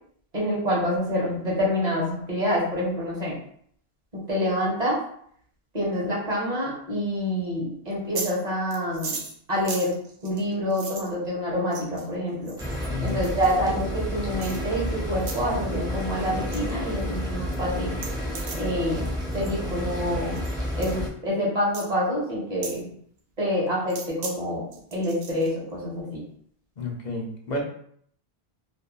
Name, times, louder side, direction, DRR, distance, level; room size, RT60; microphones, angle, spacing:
voice 1, 0.3-3.4 4.1-5.0 5.7-9.2 9.5-10.0 10.2-12.5 13.0-18.0 18.5-19.1 19.3-20.4 20.8-22.9 23.4-24.7 24.9-26.2, equal, 45° right, -5 dB, 1.0 m, -27 dB
sound 1, 7.9-8.3 8.7-11.1 11.7-12.1 12.4-13.5 14.4-14.6 15.2-15.4 15.7-16.0 16.3-16.6 17.0-17.1 17.5-17.6 17.9-18.7 19.3-19.5 20.3-20.6 20.8-21.0 21.7-21.9 22.6-22.8 23.9-24.3 24.7-25.5, right 4 dB, 80° right, 0.8 m, -37 dB
sound 2, 12.6-21.1, equal, 5° right, 0.4 m, -31 dB
voice 2, 12.9-13.2 26.8-27.6, left 2 dB, 50° left, 0 dB, 0.6 m, -31 dB
2.6 x 2.6 x 2.3 m, 0.65 s
omnidirectional pair, 1.0 m